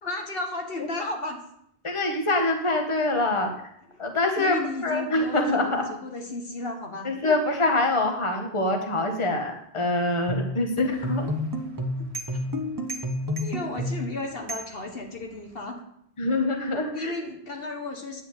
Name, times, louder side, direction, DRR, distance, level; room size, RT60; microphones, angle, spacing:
voice 1, 0.0-1.4 4.4-7.4 12.0-12.4 13.4-15.8 16.9-18.2, left 2 dB, 60° left, 2 dB, 1.5 m, -34 dB
voice 2, 1.8-3.5 4.0-4.6 4.8-5.8 7.0-11.3 16.2-17.1, left 2 dB, 30° left, 3 dB, 1.4 m, -25 dB
sound 1, 10.3-14.1, left 1 dB, 20° right, 1.0 m, -30 dB
sound 2, 10.9-15.6, right 2 dB, 85° right, 1.9 m, -43 dB
9.7 x 4.8 x 7.9 m, 0.72 s
omnidirectional pair, 1.1 m